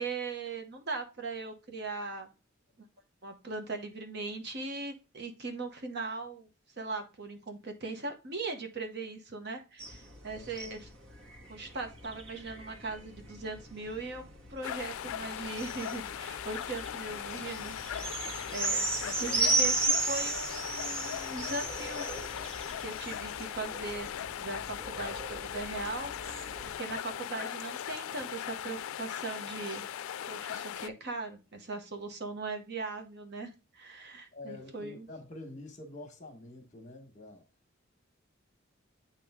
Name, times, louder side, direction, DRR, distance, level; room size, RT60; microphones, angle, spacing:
voice 1, 0.0-2.3 3.2-6.5 6.8-10.9 11.5-14.2 14.5-17.8 18.5-22.1 22.8-24.1 24.4-26.1 26.6-29.8 30.3-35.1, right 3 dB, 50° right, 0.9 m, -39 dB
sound 1, 9.8-26.7, right 2 dB, 70° right, 1.6 m, -36 dB
sound 2, 14.6-30.9, left 10 dB, 90° left, 0.3 m, -39 dB
voice 2, 18.1-18.6 19.2-19.7 34.3-37.5, left 2 dB, 35° left, 1.4 m, -47 dB
8.8 x 3.0 x 3.6 m
head